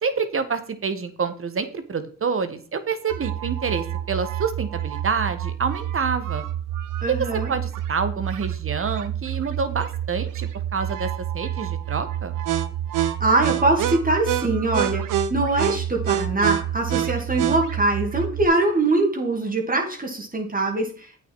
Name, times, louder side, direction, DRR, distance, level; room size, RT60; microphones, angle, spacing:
voice 1, 0.0-6.5 7.1-12.4, right 5 dB, 40° right, 11 dB, 1.4 m, -27 dB
sound 1, 3.1-18.5, right 11 dB, 75° right, 0.9 m, -27 dB
voice 2, 7.0-7.5 13.2-21.2, right 2 dB, 25° right, 1 dB, 2.2 m, -23 dB
8.4 x 7.1 x 4.7 m, 0.43 s
cardioid pair, 70°, 32 cm